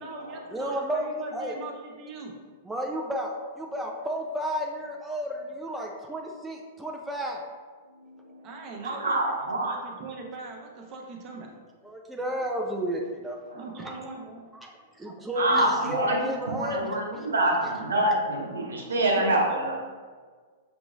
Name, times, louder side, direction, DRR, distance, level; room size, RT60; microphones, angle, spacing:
voice 1, 0.0-2.4 8.4-11.5 13.5-14.5 14.8-14.9 19.0-19.7, right 3 dB, 35° right, 1 dB, 0.7 m, -40 dB
voice 2, 0.5-1.1 1.3-1.5 2.6-7.4 11.8-13.4 14.5-17.3 17.6-17.7 18.8-18.9, equal, 5° right, 0 dB, 0.4 m, -32 dB
voice 3, 8.0-8.4 8.8-9.8 15.3-19.7, right 1 dB, 75° right, -1 dB, 0.8 m, -26 dB
5.9 x 2.9 x 2.3 m, 1.5 s
figure-of-eight pair, 105°, 0 cm